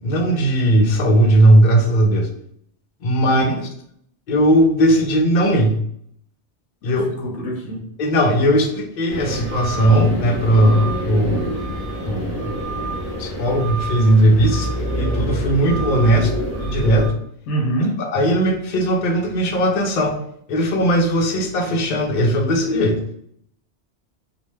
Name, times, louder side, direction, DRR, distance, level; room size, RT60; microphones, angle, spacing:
voice 1, 0.0-2.3 3.0-3.7 4.3-5.8 6.8-7.0 7.4-7.5 8.0-11.5 12.0-12.5 13.2-16.3 16.6-17.1 18.0-20.2 20.5-23.0, right 1 dB, 55° left, 1 dB, 0.6 m, -17 dB
voice 2, 3.2-3.6 6.8-7.9 17.5-18.0, right 1 dB, 80° left, -1 dB, 0.9 m, -25 dB
sound 1, 9.1-17.1, right 1 dB, 15° right, 0.7 m, -26 dB
2.4 x 2.1 x 3.1 m, 0.68 s
omnidirectional pair, 1.2 m